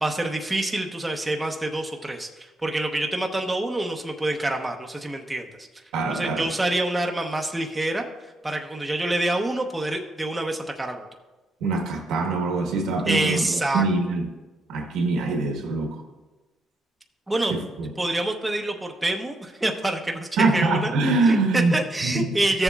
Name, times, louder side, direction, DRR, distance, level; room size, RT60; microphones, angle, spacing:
voice 1, 0.0-5.7 6.1-8.0 8.4-11.1 13.1-13.8 17.3-17.6 18.0-20.9 21.3-22.6, right 2 dB, 10° right, 2 dB, 0.8 m, -26 dB
voice 2, 5.9-6.5 11.6-14.3 14.7-16.0 17.5-17.9 20.4-21.8 22.0-22.4, right 3 dB, 80° right, 4 dB, 1.2 m, -24 dB
14.5 x 6.9 x 2.4 m, 1.2 s
cardioid pair, 100°, 0 cm